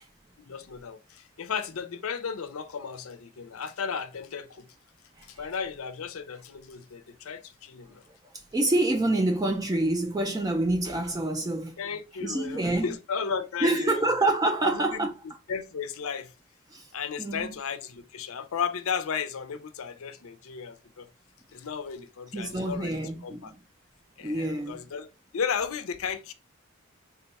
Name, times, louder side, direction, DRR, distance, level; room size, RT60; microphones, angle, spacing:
voice 1, 0.4-4.7 5.3-8.0 11.8-14.1 14.6-15.1 15.5-16.3 16.9-21.1 21.5-23.5 24.2-26.3, left 6 dB, 80° left, 0.5 m, -34 dB
voice 2, 8.5-11.8 12.2-12.9 13.6-15.1 16.7-16.9 17.2-17.6 22.3-23.5 24.2-24.8, right 2 dB, 15° right, 0.3 m, -27 dB
3.8 x 2.3 x 3.9 m
head